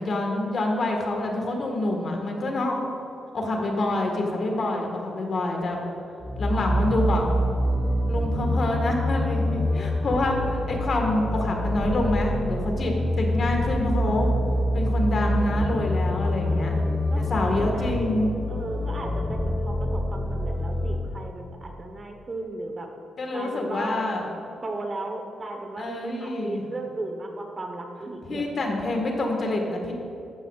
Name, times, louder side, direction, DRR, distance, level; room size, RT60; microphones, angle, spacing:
voice 1, 0.0-2.8 3.3-5.8 6.4-7.3 8.1-14.3 14.7-16.7 17.3-18.3 23.2-24.2 25.8-26.6 28.3-29.9, left 2 dB, 50° left, 2 dB, 1.6 m, -26 dB
sound 1, 6.2-21.0, equal, 10° left, 1.5 m, -26 dB
voice 2, 16.4-18.0 18.5-22.9 23.3-24.0 24.6-28.6, right 2 dB, 30° right, 4 dB, 1.0 m, -36 dB
13.5 x 11.0 x 2.4 m, 2.8 s
cardioid pair, 115°, 0 cm